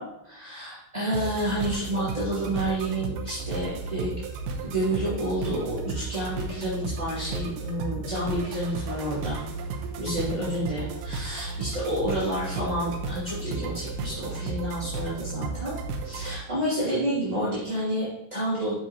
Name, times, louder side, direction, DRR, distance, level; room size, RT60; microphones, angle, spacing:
voice 1, 0.0-4.1 4.6-9.4 10.0-15.7 16.0-18.7, right 1 dB, 15° right, -11 dB, 1.4 m, -29 dB
sound 1, 1.1-16.4, right 4 dB, 85° right, 1.9 m, -34 dB
10.0 x 6.8 x 2.8 m, 0.90 s
omnidirectional pair, 4.9 m